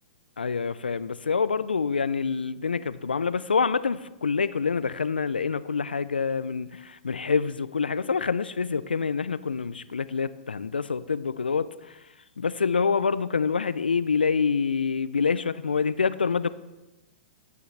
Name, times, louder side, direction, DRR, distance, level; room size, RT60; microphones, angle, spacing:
voice 1, 0.4-12.0 12.4-16.5, left 5 dB, 85° left, 16 dB, 0.4 m, -26 dB
15.5 x 9.5 x 3.3 m, 1.0 s
hypercardioid pair, 115°, 5 cm